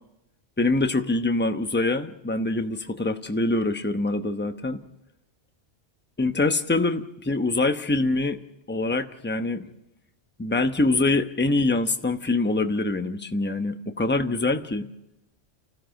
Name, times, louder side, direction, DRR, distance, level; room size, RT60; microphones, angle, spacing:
voice 1, 0.6-4.8 6.2-8.4 8.7-9.7 10.4-14.9, left 2 dB, 10° left, 7 dB, 0.8 m, -24 dB
30.0 x 15.5 x 6.5 m, 0.86 s
omnidirectional pair, 1.2 m